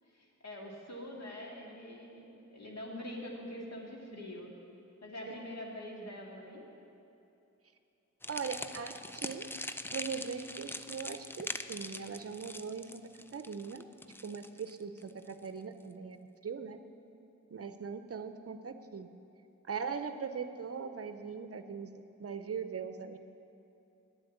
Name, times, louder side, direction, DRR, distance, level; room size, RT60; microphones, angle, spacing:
voice 1, 0.0-4.5 5.0-6.7, left 1 dB, 55° left, -2 dB, 2.2 m, -44 dB
sound 1, 8.2-15.5, left 1 dB, 5° left, 0.4 m, -42 dB
voice 2, 8.3-9.5 9.9-13.0 13.3-13.8 14.2-16.2 16.4-16.8 17.5-19.1 19.7-23.2, right 6 dB, 50° right, 9 dB, 0.6 m, -40 dB
9.2 x 7.7 x 9.3 m, 2.9 s
cardioid pair, 60°, 31 cm